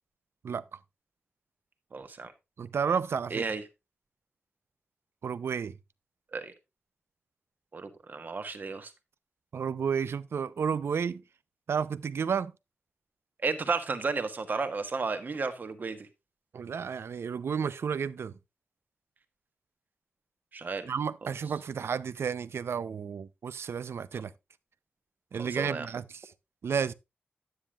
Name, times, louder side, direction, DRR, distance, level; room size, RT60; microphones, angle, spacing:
voice 1, 0.4-0.8 2.6-3.4 5.2-5.8 9.5-11.2 11.7-12.5 16.5-18.3 20.9-24.3 25.3-26.3 26.6-26.9, right 6 dB, 80° right, 0.6 m, -32 dB
voice 2, 1.9-2.3 3.3-3.6 6.3-6.5 7.7-8.9 13.4-16.1 20.5-20.9 24.1-24.2 25.4-25.9, right 4 dB, 45° right, 1.3 m, -33 dB
10.5 x 9.6 x 2.4 m
wide cardioid pair, 170°, 4 cm